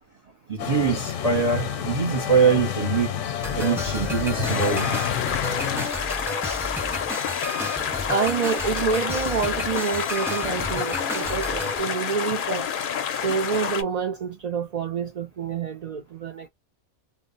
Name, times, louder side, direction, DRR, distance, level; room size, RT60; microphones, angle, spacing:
voice 1, 0.5-3.1 3.5-5.1, right 6 dB, 40° right, 0.7 m, -23 dB
sound 1, 0.6-5.9, left 9 dB, 90° left, 0.9 m, -29 dB
sound 2, 3.4-11.8, left 1 dB, 5° right, 0.4 m, -33 dB
sound 3, 4.4-13.8, left 8 dB, 60° left, 0.6 m, -29 dB
voice 2, 8.1-12.7 13.2-16.5, right 6 dB, 75° right, 0.3 m, -27 dB
2.0 x 2.0 x 3.7 m
omnidirectional pair, 1.2 m